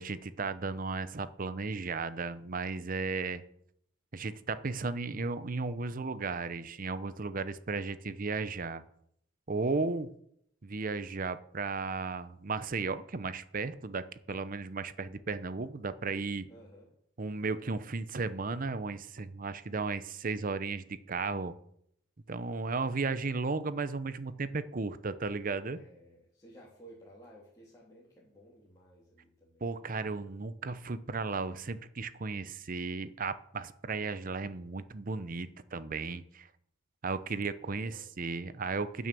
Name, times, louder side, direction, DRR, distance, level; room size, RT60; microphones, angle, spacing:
voice 1, 0.0-3.4 4.1-8.8 9.5-10.1 10.6-16.5 17.2-21.5 22.3-25.8 29.6-36.5 37.0-39.1, right 4 dB, 45° right, 13 dB, 0.7 m, -35 dB
voice 2, 16.5-16.9 25.7-29.9 37.7-38.1, right 1 dB, 20° left, -6 dB, 2.7 m, -56 dB
16.0 x 6.3 x 6.9 m, 0.71 s
head